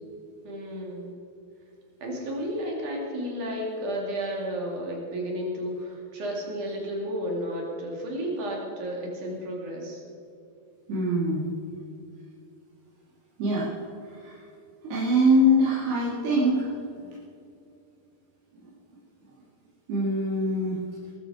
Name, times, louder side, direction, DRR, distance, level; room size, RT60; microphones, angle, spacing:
voice 1, 0.4-1.1 2.0-10.0, equal, 55° right, -1 dB, 3.8 m, -32 dB
voice 2, 10.9-11.5 13.4-13.7 14.1-14.4 14.8-17.1 19.9-20.8, equal, 90° right, -7 dB, 4.5 m, -24 dB
21.0 x 12.0 x 4.9 m, 2.6 s
omnidirectional pair, 4.4 m